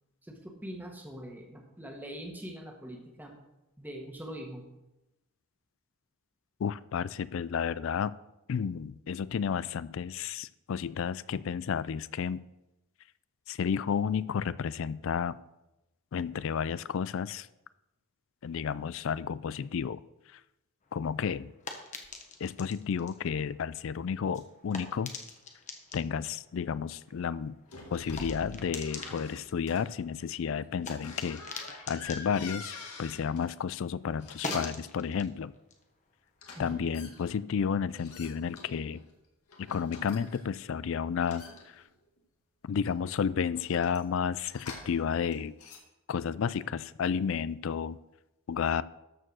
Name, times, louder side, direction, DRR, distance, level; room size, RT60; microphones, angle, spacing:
voice 1, 0.2-3.4 3.8-4.6 36.6-37.0, equal, 10° right, 0 dB, 1.5 m, -43 dB
voice 2, 6.6-8.1 8.5-12.4 13.5-15.4 16.1-17.5 18.4-20.0 20.3-20.4 20.9-21.5 22.4-25.1 25.9-27.6 27.9-35.5 36.6-39.0 39.6-41.8 42.6-45.6 46.1-48.0 48.5-48.8, left 7 dB, 60° left, 18 dB, 0.3 m, -32 dB
sound 1, 20.8-33.6 33.9-37.1, left 4 dB, 35° left, 1.1 m, -46 dB
sound 2, 27.7-28.5 28.9-29.8 31.0-33.5 34.1-34.9 36.4-37.3 38.0-39.1 39.5-40.6 41.2-42.2 42.7-45.1 45.3-45.8, left 3 dB, 90° left, 2.0 m, -45 dB
13.0 x 4.6 x 6.3 m, 0.95 s
head